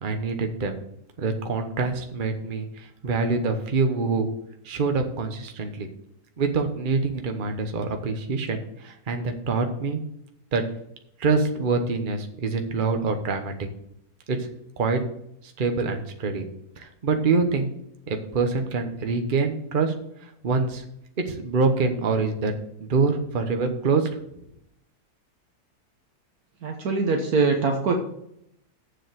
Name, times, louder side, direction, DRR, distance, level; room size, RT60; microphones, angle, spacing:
voice 1, 0.0-0.8 1.2-4.3 4.6-5.9 6.4-10.0 10.5-10.6 11.2-13.7 14.3-14.5 14.8-15.0 15.6-16.5 16.8-17.7 18.1-19.9 20.4-20.8 21.3-22.5 22.8-24.1, right 4 dB, 35° right, 5 dB, 1.1 m, -25 dB
voice 2, 26.6-27.9, right 4 dB, 65° right, 3 dB, 1.4 m, -23 dB
7.3 x 6.7 x 7.8 m, 0.76 s
omnidirectional pair, 1.7 m